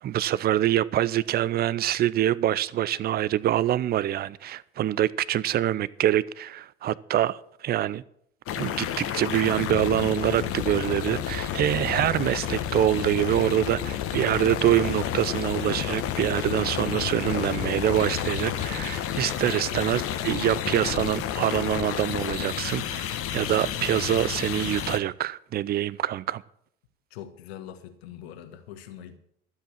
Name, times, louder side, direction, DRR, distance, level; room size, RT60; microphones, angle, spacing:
voice 1, 0.0-8.0 8.5-26.4, right 12 dB, 30° right, 0.5 m, -25 dB
sound 1, 8.5-25.0, left 10 dB, 40° left, 1.2 m, -30 dB
voice 2, 27.1-29.2, left 10 dB, 65° left, 1.4 m, -43 dB
12.5 x 7.8 x 7.3 m
hypercardioid pair, 75°, 33 cm